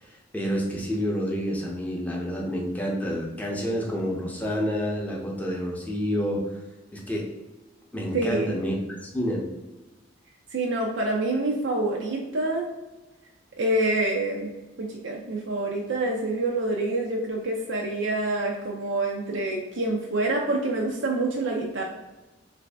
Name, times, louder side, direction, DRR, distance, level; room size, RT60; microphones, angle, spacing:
voice 1, 0.0-6.4 6.9-7.3 7.9-8.8 9.0-9.5, equal, 10° left, -2 dB, 0.6 m, -29 dB
voice 2, 8.1-8.6 10.5-12.7 13.6-14.5 14.8-21.8, right 2 dB, 85° right, -1 dB, 0.5 m, -27 dB
3.1 x 2.6 x 3.3 m, 1.1 s
head